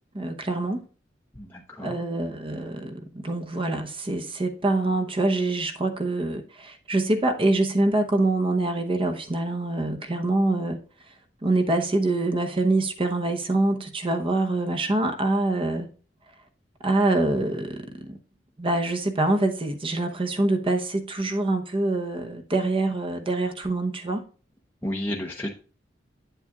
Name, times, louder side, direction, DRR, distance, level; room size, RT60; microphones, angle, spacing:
voice 1, 0.1-0.8 1.8-10.8 11.4-15.9 16.8-18.2 18.6-24.2, right 2 dB, 30° right, 0.9 m, -25 dB
voice 2, 1.4-2.0 24.8-25.5, left 1 dB, 10° left, 0.6 m, -31 dB
8.3 x 7.8 x 2.3 m
head